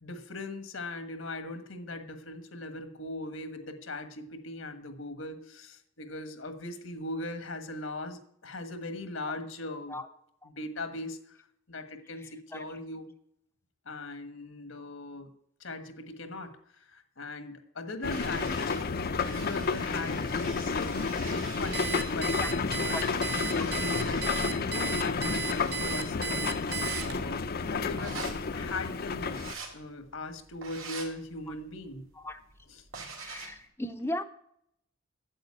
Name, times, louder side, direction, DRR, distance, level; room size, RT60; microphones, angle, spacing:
voice 1, 0.0-10.0 10.5-11.4 11.7-13.0 13.8-15.3 15.6-23.0 23.3-28.2 28.5-29.4 29.7-32.0 32.8-32.9, left 2 dB, 80° left, 9 dB, 1.4 m, -40 dB
voice 2, 12.2-12.6 22.4-22.5 22.9-23.1 31.5-31.6 32.1-32.4 33.2-34.2, left 1 dB, 10° left, 6 dB, 0.6 m, -37 dB
sound 1, 18.0-29.5, left 4 dB, 50° left, 0.6 m, -31 dB
sound 2, 18.1-33.6, right 5 dB, 90° right, 2.5 m, -46 dB
Alarm, 21.7-27.4, right 6 dB, 55° right, 1.0 m, -35 dB
9.1 x 7.8 x 8.6 m, 0.73 s
head